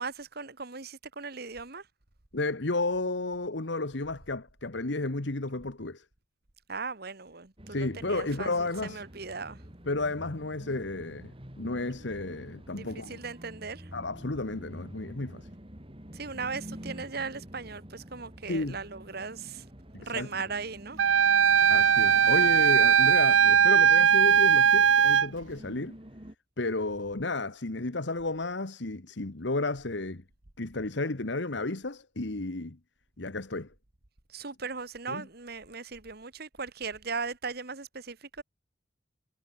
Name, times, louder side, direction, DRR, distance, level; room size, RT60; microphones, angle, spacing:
voice 1, 0.0-1.8 6.7-9.6 12.7-13.9 16.1-19.6 20.0-21.0 34.3-38.4, right 4 dB, 55° right, 1.8 m, -38 dB
voice 2, 2.3-6.0 7.7-9.0 9.8-13.2 13.9-15.5 16.3-16.5 18.5-18.8 19.9-20.3 21.5-26.0 26.6-30.2 30.6-32.8 33.2-33.7 35.1-35.3, left 2 dB, 70° left, 1.5 m, -32 dB
sound 1, 7.6-26.4, equal, 30° right, 3.6 m, -48 dB
Wind instrument woodwind instrument, 21.0-25.3, right 8 dB, 85° right, 0.6 m, -20 dB
head